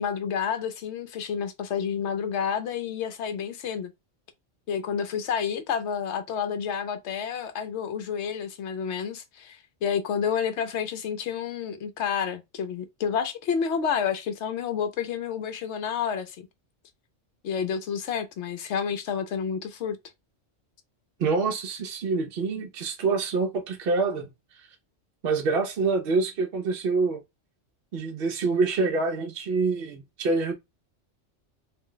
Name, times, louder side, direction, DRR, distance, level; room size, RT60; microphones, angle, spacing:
voice 1, 0.0-3.9 4.7-16.5 17.4-20.0, left 7 dB, 70° left, 0.9 m, -29 dB
voice 2, 21.2-24.3 25.2-27.2 27.9-30.5, right 4 dB, 60° right, 0.8 m, -26 dB
2.5 x 2.1 x 3.8 m
omnidirectional pair, 1.2 m